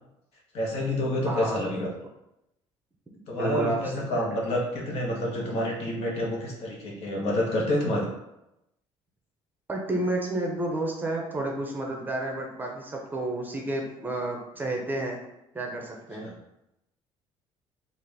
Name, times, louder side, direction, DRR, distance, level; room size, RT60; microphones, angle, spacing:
voice 1, 0.5-1.9 3.3-8.1 16.2-16.3, left 1 dB, 65° left, -2 dB, 1.1 m, -28 dB
voice 2, 1.3-1.7 3.4-4.3 9.7-15.2 15.5-16.3, right 1 dB, 15° right, 0 dB, 0.6 m, -31 dB
3.8 x 2.5 x 3.3 m, 0.87 s
cardioid pair, 135°, 11 cm